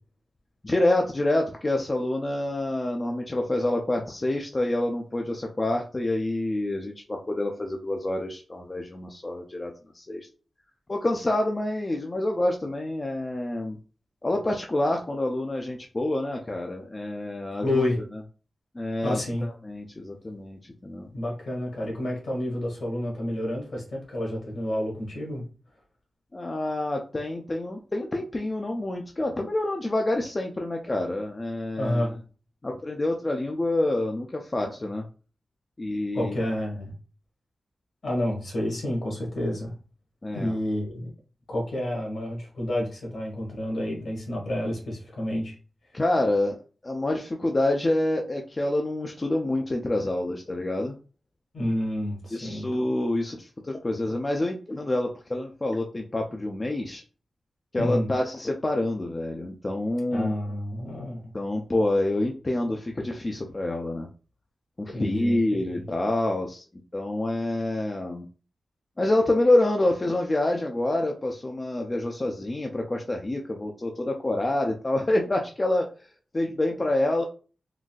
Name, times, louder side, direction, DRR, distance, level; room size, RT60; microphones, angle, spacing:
voice 1, 0.6-10.3 10.9-13.8 14.2-18.2 18.7-21.1 26.3-32.1 32.6-35.1 35.8-36.4 40.2-40.5 45.9-50.9 52.3-57.0 57.7-60.3 61.3-64.1 64.8-66.6 66.9-68.3 69.0-76.1 76.3-77.2, left 1 dB, 25° left, 2 dB, 0.4 m, -27 dB
voice 2, 17.6-18.0 19.0-19.5 21.1-25.4 31.8-32.2 36.1-36.9 38.0-39.7 40.3-41.1 41.5-45.5 51.5-52.7 57.8-58.1 60.1-61.3 64.9-65.4 65.7-65.8, left 1 dB, 65° left, -1 dB, 1.5 m, -29 dB
3.8 x 2.6 x 2.3 m, 0.36 s
wide cardioid pair, 125°, 0 cm